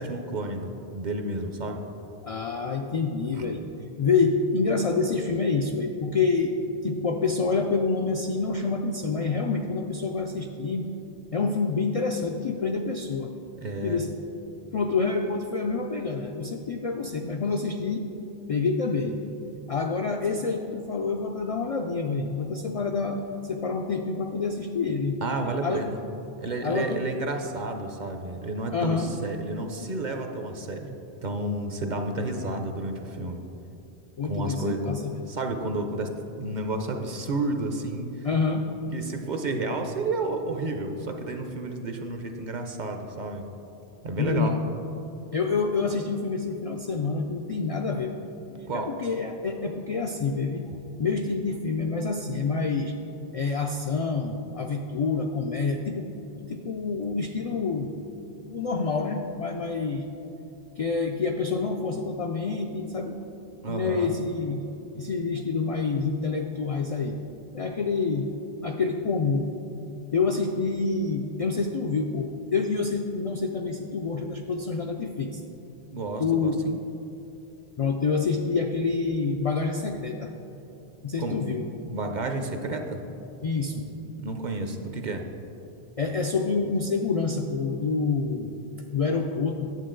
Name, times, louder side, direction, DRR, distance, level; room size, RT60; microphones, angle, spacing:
voice 1, 0.0-1.8 3.3-3.5 13.6-14.0 25.2-26.0 26.4-33.4 34.2-35.0 35.3-36.1 36.4-38.3 38.9-43.5 44.0-44.5 48.7-48.9 63.6-64.1 75.9-76.8 81.2-81.4 81.8-83.0 84.2-85.2, right 2 dB, 50° right, 5 dB, 0.7 m, -31 dB
voice 2, 2.2-3.6 4.0-6.5 6.8-10.9 11.3-13.3 13.8-14.1 14.7-18.1 18.5-19.2 19.7-25.2 25.6-25.8 26.6-27.0 28.7-29.2 34.2-35.1 38.2-38.7 44.2-44.6 45.3-48.1 48.5-50.7 51.0-52.9 53.3-56.1 56.3-57.9 58.4-60.1 60.8-63.2 63.7-64.6 65.0-67.2 67.5-68.3 68.6-69.5 70.1-75.4 76.2-76.6 77.8-80.3 81.0-81.7 83.4-83.9 86.0-88.5 88.9-89.7, left 4 dB, 60° left, 3 dB, 0.4 m, -27 dB
9.2 x 7.5 x 3.8 m, 2.9 s
omnidirectional pair, 1.1 m